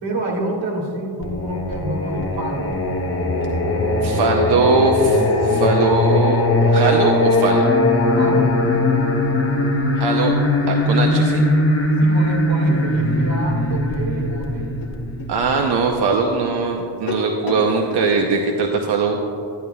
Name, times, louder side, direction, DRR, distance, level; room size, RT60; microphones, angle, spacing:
voice 1, 0.0-2.8 8.2-8.7 12.0-14.7, right 1 dB, 80° right, -1 dB, 2.1 m, -27 dB
Singing, 1.2-15.9, left 2 dB, 30° left, 0.8 m, -19 dB
voice 2, 4.0-7.7 9.9-10.3 10.7-11.4 15.3-19.2, right 4 dB, 60° right, 2 dB, 0.7 m, -20 dB
sound 1, 14.8-18.1, left 2 dB, 50° left, 1.1 m, -32 dB
10.5 x 10.5 x 2.3 m, 2.6 s
wide cardioid pair, 135°, 46 cm